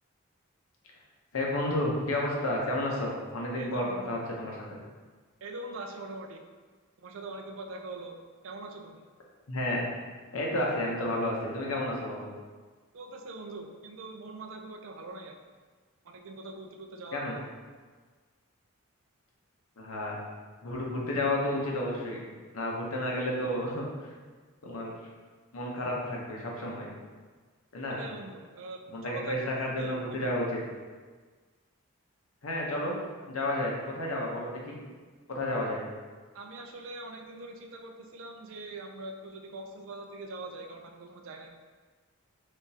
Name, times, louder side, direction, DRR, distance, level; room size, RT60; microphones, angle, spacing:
voice 1, 1.3-4.6 9.5-9.8 10.3-12.3 17.1-17.4 19.8-20.2 20.6-23.8 24.6-24.9 25.5-26.9 27.7-28.0 28.9-30.4 32.4-33.0 33.3-34.8 35.3-35.9, left 1 dB, 80° left, -2 dB, 0.8 m, -31 dB
voice 2, 3.5-4.2 5.4-6.4 7.0-8.2 8.4-9.0 12.9-15.4 16.0-17.3 27.9-30.4 35.3-35.6 36.3-41.6, right 2 dB, 65° right, 4 dB, 0.4 m, -43 dB
3.6 x 3.4 x 2.8 m, 1.4 s
head